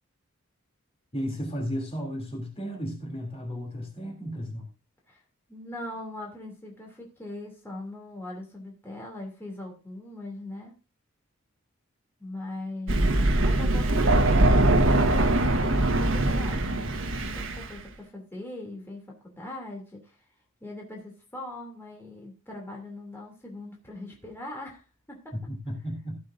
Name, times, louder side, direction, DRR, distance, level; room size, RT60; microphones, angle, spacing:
voice 1, 1.1-4.7 25.3-26.2, equal, 25° left, 2 dB, 3.1 m, -34 dB
voice 2, 5.5-10.7 12.2-20.3 20.6-25.3, left 1 dB, 10° left, -1 dB, 3.0 m, -41 dB
Thunder, 12.9-17.7, right 1 dB, 65° right, 1.5 m, -22 dB
16.0 x 8.1 x 2.7 m, 0.31 s
head